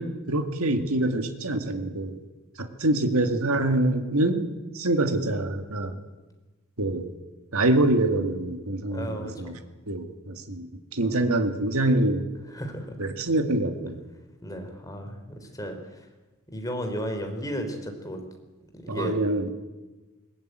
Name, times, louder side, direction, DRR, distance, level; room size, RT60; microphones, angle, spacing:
voice 1, 0.0-2.2 2.6-4.5 4.7-6.0 6.8-7.1 7.5-9.5 9.9-12.2 13.0-14.0 18.9-19.5, right 2 dB, 75° right, 7 dB, 2.1 m, -25 dB
voice 2, 8.9-9.6 11.0-11.3 12.5-13.0 14.4-16.1 16.5-18.2 18.7-19.2, equal, 15° left, 5 dB, 3.5 m, -34 dB
21.5 x 19.5 x 9.3 m, 1.2 s
head